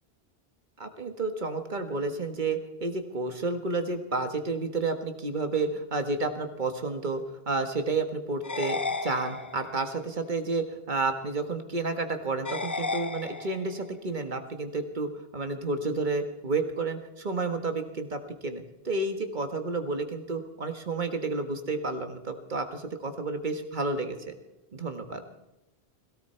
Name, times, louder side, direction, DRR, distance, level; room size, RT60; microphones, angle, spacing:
voice 1, 0.8-24.3 24.7-25.2, right 3 dB, 50° right, 7 dB, 1.7 m, -31 dB
sound 1, 8.4-9.9 12.4-13.9, left 3 dB, 25° left, 0.5 m, -33 dB
18.0 x 16.5 x 4.5 m, 0.96 s
omnidirectional pair, 1.1 m